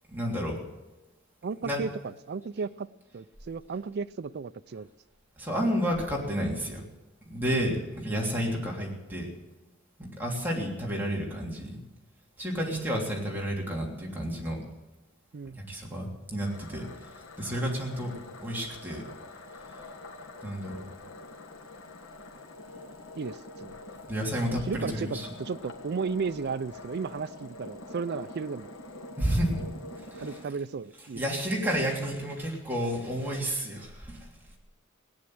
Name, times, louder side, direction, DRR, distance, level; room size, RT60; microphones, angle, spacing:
voice 1, 0.1-0.6 1.6-1.8 5.4-6.8 7.2-9.3 10.0-11.8 12.4-14.6 15.7-16.8 17.4-18.1 18.4-19.0 20.4-20.8 24.1-25.3 29.2-29.6 30.1-30.3 31.2-34.3, equal, 10° right, -3 dB, 3.1 m, -31 dB
voice 2, 1.4-2.9 3.1-4.9 15.3-15.6 23.2-23.8 24.5-28.7 30.2-31.2, right 5 dB, 55° right, 13 dB, 0.4 m, -34 dB
sound 1, 16.4-30.5, left 2 dB, 80° left, 1.7 m, -45 dB
17.5 x 9.7 x 7.8 m, 1.0 s
head